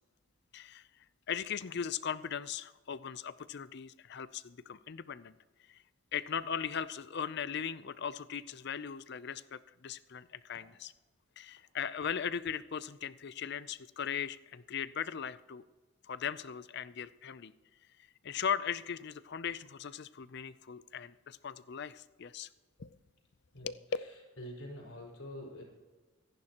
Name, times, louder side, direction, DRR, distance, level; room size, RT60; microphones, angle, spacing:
voice 1, 0.5-0.9 1.3-5.4 5.7-5.8 6.1-10.6 11.4-15.6 16.0-17.5 18.2-22.5 22.8-23.0 23.6-23.8, left 7 dB, 55° left, 16 dB, 0.5 m, -38 dB
voice 2, 23.5-25.6, equal, 85° left, 0 dB, 4.4 m, -47 dB
24.5 x 10.5 x 3.0 m, 1.3 s
head